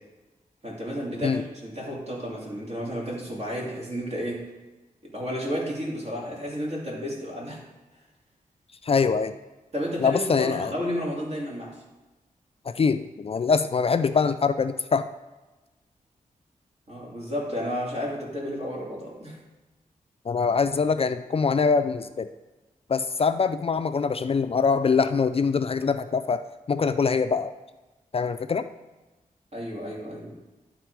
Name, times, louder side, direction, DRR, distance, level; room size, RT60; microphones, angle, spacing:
voice 1, 0.6-4.5 5.0-7.6 9.7-11.8 16.9-19.4 29.5-30.4, equal, 50° right, -4 dB, 2.7 m, -32 dB
voice 2, 8.8-9.4 10.0-10.7 12.7-15.1 20.3-22.3 22.9-26.4 26.7-27.5 28.1-28.7, left 5 dB, 40° left, 10 dB, 0.3 m, -23 dB
11.5 x 4.2 x 4.6 m, 1.1 s
wide cardioid pair, 85°, 14 cm